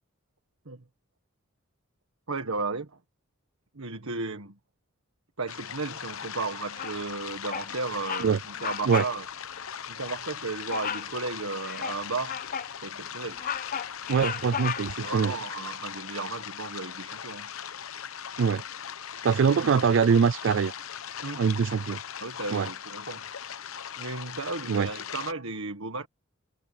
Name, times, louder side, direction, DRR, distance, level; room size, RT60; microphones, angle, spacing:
voice 1, 2.3-3.0 3.7-4.6 5.4-9.2 9.9-12.4 12.8-13.4 14.8-17.5 21.2-21.5 22.2-23.3 24.0-26.1, right 3 dB, 90° right, 1.6 m, -34 dB
sound 1, 5.5-25.3, left 8 dB, 85° left, 0.9 m, -39 dB
Bird vocalization bird call bird song, 6.8-7.2 7.5-7.7 8.0-8.3 8.6-9.2 9.5-9.7 10.7-11.1 11.6-12.7 13.2-15.1, left 7 dB, 40° left, 0.6 m, -34 dB
voice 2, 14.1-15.3 18.4-18.6 19.2-20.7 21.4-22.0 22.5-22.7 24.7-24.9, right 6 dB, 65° right, 0.4 m, -23 dB
head